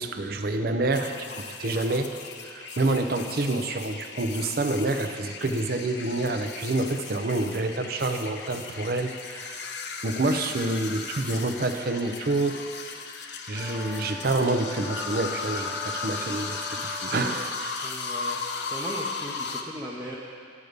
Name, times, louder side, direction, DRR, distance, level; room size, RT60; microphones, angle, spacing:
voice 1, 0.0-2.1 2.4-9.7 10.0-12.6 13.5-17.9, right 2 dB, 50° right, 7 dB, 0.6 m, -28 dB
sound 1, 0.9-19.6, left 4 dB, 60° left, 0.7 m, -36 dB
Brass instrument, 13.5-17.4, left 1 dB, 15° left, 0.9 m, -43 dB
voice 2, 17.8-18.4 18.7-20.2, equal, 10° right, -6 dB, 0.7 m, -37 dB
11.0 x 7.9 x 5.1 m, 2.3 s
head